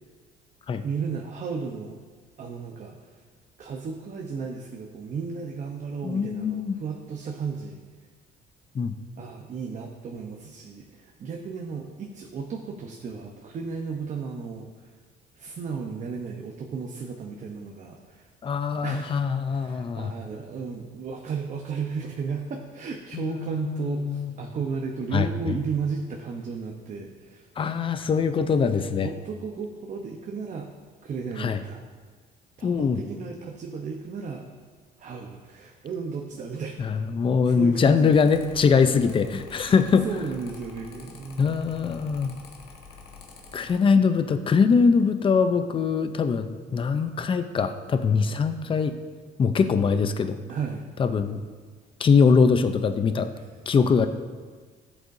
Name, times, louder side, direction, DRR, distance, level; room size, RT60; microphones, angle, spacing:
voice 1, 0.8-2.0 2.4-3.2 3.6-7.8 9.2-14.9 15.3-18.3 18.8-19.2 19.5-27.5 29.0-30.7 31.0-31.8 32.6-34.4 35.0-37.0 37.5-38.4 39.6-39.7 40.0-41.5 50.5-50.9 53.3-53.5, right 5 dB, 45° right, 1 dB, 0.9 m, -34 dB
voice 2, 6.0-6.8 8.7-8.9 18.4-20.1 23.1-24.3 25.1-25.3 27.6-29.1 31.4-31.6 32.6-33.0 36.8-40.1 41.4-42.3 43.5-49.0 49.4-50.4 51.0-51.4 52.0-53.3 53.7-54.1, left 5 dB, 30° left, 9 dB, 0.6 m, -22 dB
Mechanical fan, 38.1-43.8, left 5 dB, 70° left, 1.5 m, -47 dB
14.0 x 8.0 x 2.7 m, 1.5 s
cardioid pair, 110°, 17 cm